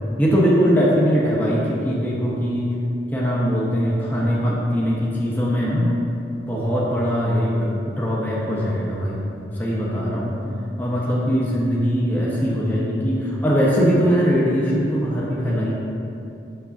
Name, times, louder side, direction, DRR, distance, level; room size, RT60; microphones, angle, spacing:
voice 1, 0.2-2.7 3.1-5.9 6.5-9.2 9.6-10.4 10.8-15.7, equal, 10° left, -6 dB, 1.2 m, -21 dB
9.0 x 7.1 x 2.7 m, 2.6 s
head